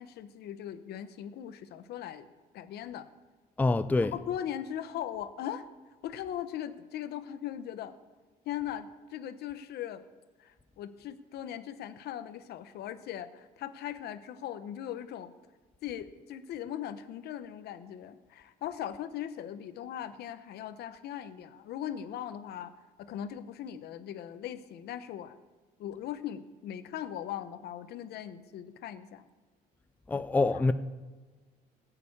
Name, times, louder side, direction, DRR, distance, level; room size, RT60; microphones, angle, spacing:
voice 1, 0.0-2.3 2.5-3.1 4.1-5.6 6.0-7.9 8.4-10.0 10.4-15.3 15.8-22.7 23.0-25.4 25.8-29.2 30.1-30.2, left 10 dB, 70° left, 1.0 m, -39 dB
voice 2, 3.6-4.1 30.1-30.7, left 3 dB, 10° left, 0.5 m, -25 dB
14.5 x 6.9 x 8.6 m
cardioid pair, 110°, 17 cm